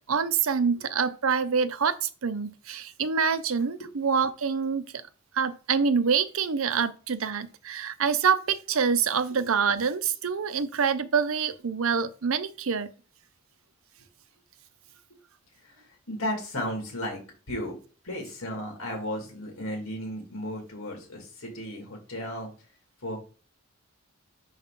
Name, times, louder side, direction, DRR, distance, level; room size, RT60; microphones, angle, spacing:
voice 1, 0.1-4.8 5.3-12.9, right 6 dB, 70° right, 0.6 m, -26 dB
voice 2, 15.6-17.2 17.5-17.8 18.0-22.5 23.0-23.2, equal, 75° left, 2.1 m, -34 dB
5.5 x 5.4 x 3.7 m
head